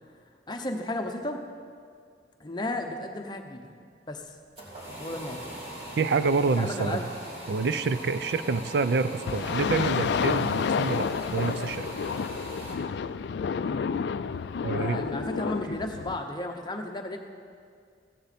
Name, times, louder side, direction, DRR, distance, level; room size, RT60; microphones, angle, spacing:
voice 1, 0.5-1.4 2.4-3.7 4.1-4.2 5.0-5.5 6.6-7.1 13.6-13.8 14.7-17.2, left 1 dB, 25° left, 4 dB, 0.8 m, -34 dB
sound 1, 4.3-12.8, right 1 dB, 35° right, 2.6 m, -41 dB
voice 2, 6.0-7.1 7.5-11.9 14.6-15.0, right 4 dB, 60° right, 12 dB, 0.4 m, -27 dB
sound 2, 9.3-16.2, left 6 dB, 65° left, 0.3 m, -30 dB
15.0 x 10.0 x 4.3 m, 2.2 s
head